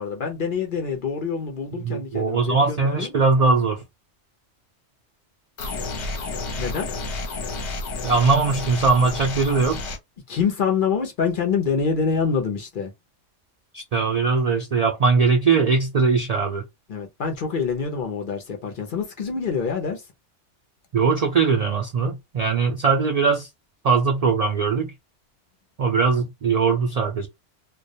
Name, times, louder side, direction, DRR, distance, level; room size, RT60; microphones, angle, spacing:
voice 1, 0.0-3.1 6.6-6.9 10.3-12.9 16.9-20.0, left 6 dB, 55° left, 0.7 m, -26 dB
voice 2, 1.7-3.8 8.0-9.8 13.7-16.6 20.9-23.5 23.8-24.9 25.8-27.3, right 4 dB, 80° right, 0.3 m, -20 dB
sound 1, 5.6-10.0, left 3 dB, 70° left, 1.0 m, -31 dB
2.2 x 2.1 x 2.6 m
omnidirectional pair, 1.3 m